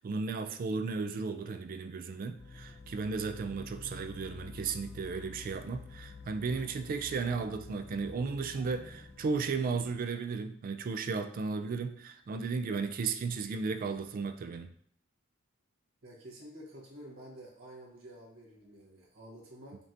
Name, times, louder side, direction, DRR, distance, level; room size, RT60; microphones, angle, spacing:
voice 1, 0.0-14.7, right 4 dB, 45° right, 8 dB, 0.3 m, -35 dB
sound 1, 2.4-10.0, left 4 dB, 55° left, 0.7 m, -49 dB
voice 2, 16.0-19.8, right 1 dB, 80° right, -4 dB, 1.3 m, -50 dB
5.2 x 2.8 x 2.5 m, 0.63 s
head